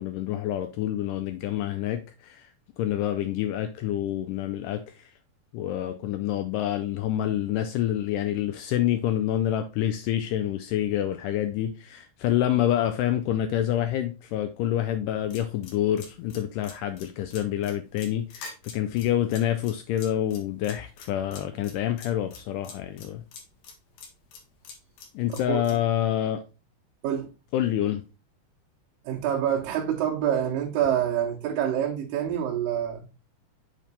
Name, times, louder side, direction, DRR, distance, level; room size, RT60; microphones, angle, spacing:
voice 1, 0.0-2.5 2.8-5.1 5.5-23.2 25.1-26.4 27.5-28.0, left 11 dB, 90° left, 1.8 m, -27 dB
sound 1, 15.3-25.8, left 5 dB, 70° left, 3.0 m, -45 dB
voice 2, 29.1-33.0, right 10 dB, 75° right, 2.4 m, -26 dB
7.5 x 3.5 x 4.0 m
omnidirectional pair, 4.3 m